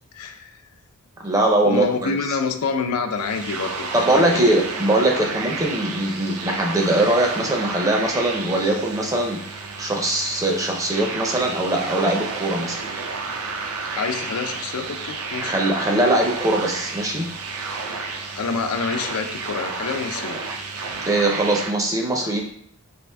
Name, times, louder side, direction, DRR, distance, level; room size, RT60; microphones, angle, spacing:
voice 1, 0.1-0.6 1.6-4.4 13.8-15.6 18.3-20.4, left 5 dB, 85° left, 7 dB, 0.4 m, -27 dB
voice 2, 1.2-2.1 3.9-12.8 15.4-17.3 21.1-22.4, right 1 dB, 15° right, 1 dB, 0.5 m, -21 dB
sound 1, 3.1-21.7, right 4 dB, 80° right, 0.5 m, -31 dB
4.4 x 2.5 x 3.3 m, 0.65 s
head